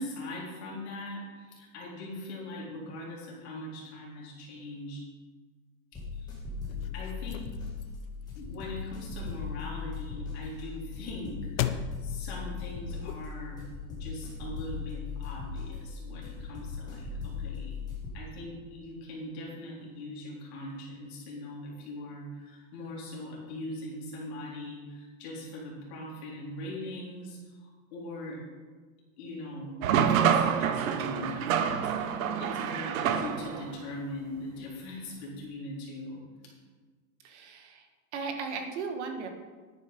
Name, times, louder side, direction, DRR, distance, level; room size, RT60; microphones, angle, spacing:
voice 1, 0.0-5.0 6.2-6.3 6.7-7.5 8.3-13.6 13.9-17.8 18.1-28.4 29.2-31.9 32.4-36.2, left 1 dB, 50° left, -4 dB, 4.0 m, -41 dB
sound 1, 5.9-18.1, left 5 dB, 10° left, 1.9 m, -38 dB
sound 2, 6.5-13.6, left 11 dB, 70° left, 0.8 m, -40 dB
sound 3, 29.8-33.7, right 8 dB, 70° right, 1.1 m, -27 dB
voice 2, 37.2-37.9 38.1-39.3, right 5 dB, 55° right, 5 dB, 1.7 m, -36 dB
11.0 x 9.1 x 5.2 m, 1.4 s
supercardioid pair, 180°, 42 cm